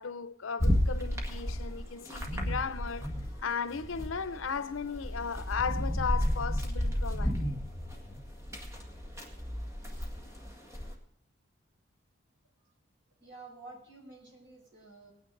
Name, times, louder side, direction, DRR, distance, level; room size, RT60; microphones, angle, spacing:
voice 1, 0.0-3.1 3.4-7.4, left 6 dB, 85° left, 0.6 m, -36 dB
sound 1, 0.6-3.4 3.7-10.9, equal, 15° right, 1.7 m, -32 dB
voice 2, 13.2-15.1, right 3 dB, 60° right, 5.8 m, -50 dB
19.5 x 9.6 x 3.9 m
head